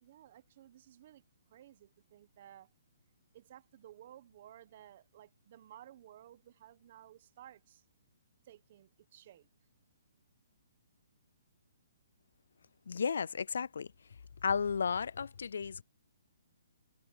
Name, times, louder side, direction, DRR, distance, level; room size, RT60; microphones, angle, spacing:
voice 1, 0.0-1.2 1.5-2.7 3.3-7.8 8.4-9.5, right 12 dB, 35° right, 1.1 m, -56 dB
voice 2, 12.9-13.9 14.4-15.8, left 6 dB, 70° left, 0.3 m, -33 dB
hypercardioid pair, 170°, 0 cm